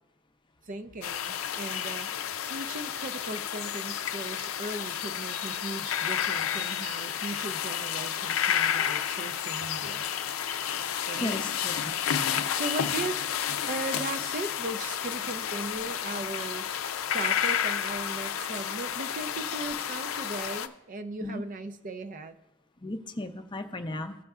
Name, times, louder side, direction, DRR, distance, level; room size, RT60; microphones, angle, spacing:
voice 1, 0.7-2.1 2.5-10.1 11.1-11.4 12.5-13.2 13.7-16.7 17.1-22.4, right 3 dB, 40° right, 9 dB, 0.4 m, -38 dB
sound 1, 1.0-20.7, left 9 dB, 90° left, 0.5 m, -31 dB
voice 2, 11.2-11.8 21.2-21.4 22.8-24.1, left 1 dB, 25° left, 7 dB, 0.5 m, -35 dB
16.0 x 6.5 x 2.4 m, 0.91 s
head